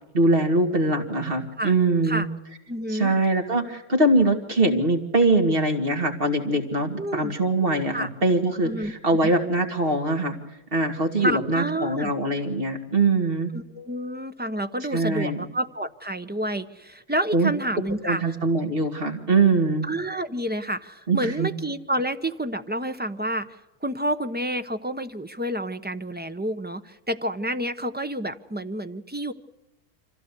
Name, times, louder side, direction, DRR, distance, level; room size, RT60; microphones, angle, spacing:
voice 1, 0.1-2.3 2.9-10.4 10.7-13.5 14.9-15.4 17.3-17.5 18.0-19.9 21.1-21.5, right 2 dB, 50° right, 4 dB, 2.7 m, -22 dB
voice 2, 2.7-3.1 7.0-7.3 7.9-8.1 8.6-8.9 9.2-9.3 11.2-12.1 13.5-18.4 19.9-29.3, right 1 dB, 10° right, 8 dB, 0.8 m, -29 dB
25.5 x 16.0 x 8.3 m, 1.0 s
omnidirectional pair, 1.3 m